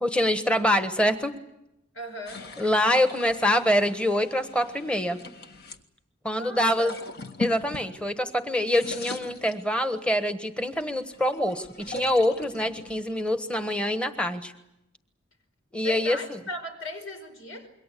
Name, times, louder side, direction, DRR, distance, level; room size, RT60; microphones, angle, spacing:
voice 1, 0.0-1.3 2.6-5.2 6.2-6.9 7.4-14.5 15.7-16.2, left 1 dB, 5° left, 8 dB, 1.3 m, -25 dB
voice 2, 1.9-2.5 6.4-6.9 15.8-17.7, left 1 dB, 85° left, 7 dB, 5.2 m, -37 dB
sound 1, 2.3-5.8 6.6-8.4 8.6-10.1 10.6-14.1, left 3 dB, 55° left, 1.6 m, -40 dB
27.5 x 23.0 x 8.4 m, 0.87 s
head